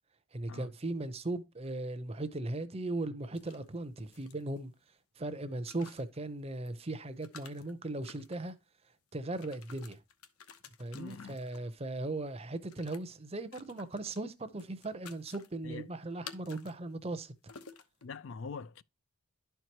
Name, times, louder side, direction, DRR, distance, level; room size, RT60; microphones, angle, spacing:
voice 1, 0.3-4.7 5.2-8.6 9.1-10.0 10.8-17.3, right 2 dB, 25° right, 0.7 m, -38 dB
sound 1, 3.3-4.9 5.5-6.2 6.7-6.8 7.1-8.5 9.2-11.8 12.7-13.0 13.5-14.2 14.6-15.5 16.2-16.8 17.1-17.2 17.5-18.1, left 6 dB, 85° left, 1.0 m, -52 dB
voice 2, 10.9-11.4 15.6-15.9 18.0-18.8, left 4 dB, 60° left, 0.4 m, -43 dB
12.0 x 4.6 x 2.9 m
head